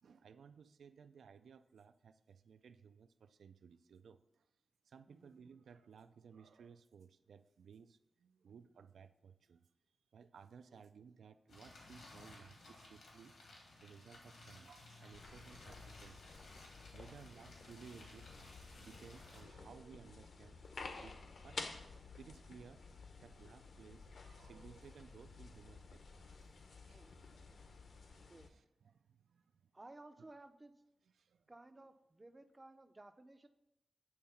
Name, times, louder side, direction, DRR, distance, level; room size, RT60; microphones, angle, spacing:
voice 1, 0.0-4.4 4.9-9.6 10.1-13.4 13.8-18.3 18.8-20.6 21.0-22.9 23.2-26.5 26.9-27.0 27.3-27.5 27.9-28.3 28.5-29.7 31.2-31.4, right 6 dB, 90° right, 11 dB, 0.3 m, -59 dB
voice 2, 5.1-5.4 10.7-10.8 17.3-17.6 26.9-27.2 28.3-28.5 29.7-30.7 31.5-33.5, right 2 dB, 20° right, 9 dB, 0.4 m, -58 dB
sound 1, 11.5-19.4, left 2 dB, 90° left, 2.0 m, -58 dB
sound 2, 15.1-28.5, left 4 dB, 60° left, 0.7 m, -53 dB
8.7 x 3.7 x 5.6 m, 0.88 s
wide cardioid pair, 165°, 0 cm